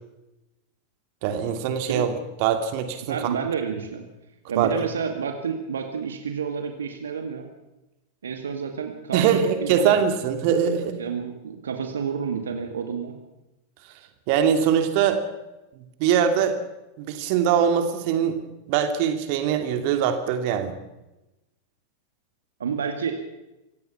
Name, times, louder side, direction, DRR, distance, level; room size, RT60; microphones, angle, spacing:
voice 1, 1.2-2.1 2.4-3.2 4.6-4.7 9.1-11.0 14.3-15.2 16.0-16.6 17.0-18.4 18.7-20.8, right 8 dB, 45° right, 7 dB, 2.6 m, -22 dB
voice 2, 3.0-4.0 4.5-7.5 8.2-10.0 11.0-13.1 22.6-23.2, right 6 dB, 65° right, 5 dB, 2.1 m, -29 dB
26.0 x 17.0 x 5.9 m, 0.97 s
figure-of-eight pair, 90°, 0 cm